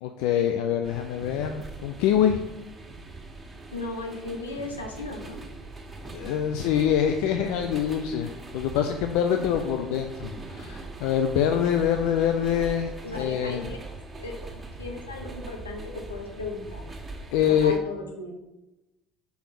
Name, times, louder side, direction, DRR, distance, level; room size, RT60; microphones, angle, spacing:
voice 1, 0.0-2.4 6.1-13.7 17.3-17.7, left 9 dB, 65° left, 6 dB, 0.5 m, -25 dB
sound 1, 0.8-17.8, right 3 dB, 25° right, 1.5 m, -41 dB
voice 2, 3.7-5.4 13.0-13.8 14.2-14.4 14.8-16.8 17.4-18.3, left 3 dB, 90° left, 1 dB, 1.1 m, -36 dB
5.1 x 4.9 x 6.0 m, 1.0 s
figure-of-eight pair, 60°, 0 cm